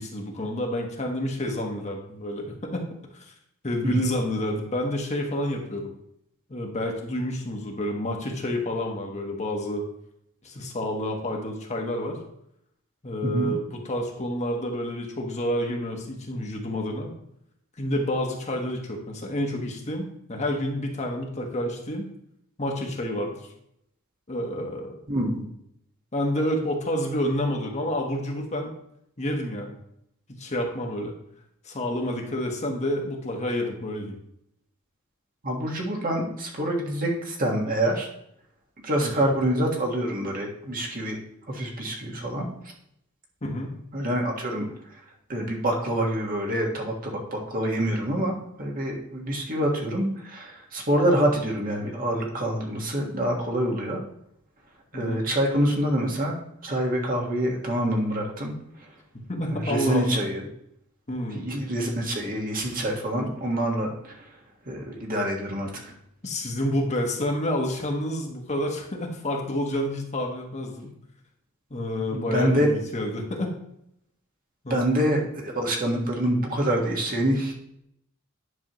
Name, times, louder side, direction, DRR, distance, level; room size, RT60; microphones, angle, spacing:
voice 1, 0.0-2.9 3.1-3.3 3.6-5.9 6.5-9.8 10.4-12.2 13.0-17.1 17.8-22.1 22.6-23.4 24.3-25.0 26.1-28.7 29.2-29.7 30.3-31.1 31.6-34.2 39.0-39.3 43.4-43.7 54.9-55.2 59.3-60.1 61.1-61.4 66.2-70.9 71.7-73.5 74.6-74.8, left 1 dB, 30° left, 1 dB, 1.2 m, -29 dB
voice 2, 13.2-13.5 25.1-25.4 35.4-38.1 38.8-41.2 41.5-42.5 43.9-45.0 45.3-54.0 54.9-56.4 56.6-58.9 59.5-60.5 61.3-64.4 64.6-65.9 72.1-72.7 74.7-77.5, right 1 dB, 40° right, -1 dB, 1.5 m, -26 dB
9.8 x 6.2 x 3.0 m, 0.75 s
head